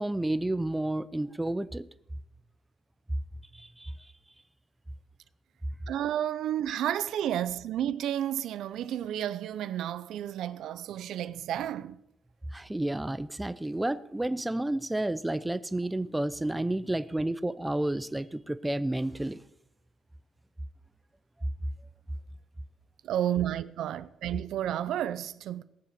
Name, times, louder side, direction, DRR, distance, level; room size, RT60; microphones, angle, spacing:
voice 1, 0.0-1.9 3.5-3.9 12.5-19.4, right 1 dB, 10° right, 0.6 m, -31 dB
voice 2, 5.9-12.0 23.0-25.6, right 11 dB, 75° right, 0.6 m, -31 dB
17.5 x 7.6 x 6.9 m
cardioid pair, 120°, 0 cm